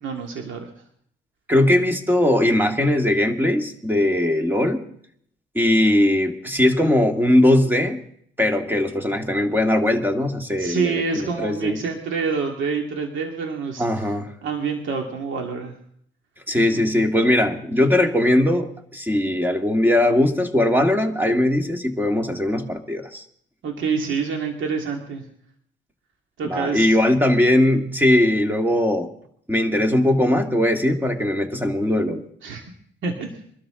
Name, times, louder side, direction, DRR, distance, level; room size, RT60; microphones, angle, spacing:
voice 1, 0.0-0.7 10.6-14.1 14.4-15.7 16.7-16.8 23.6-25.2 26.4-27.0 32.4-32.6 33.0-33.3, right 5 dB, 75° right, 2 dB, 2.5 m, -27 dB
voice 2, 1.5-4.8 5.5-8.0 8.4-11.8 13.8-14.3 16.5-23.2 26.4-29.1 29.5-32.2, left 1 dB, 10° right, 5 dB, 2.1 m, -20 dB
23.5 x 12.5 x 3.9 m, 0.65 s
cardioid pair, 90°, 20 cm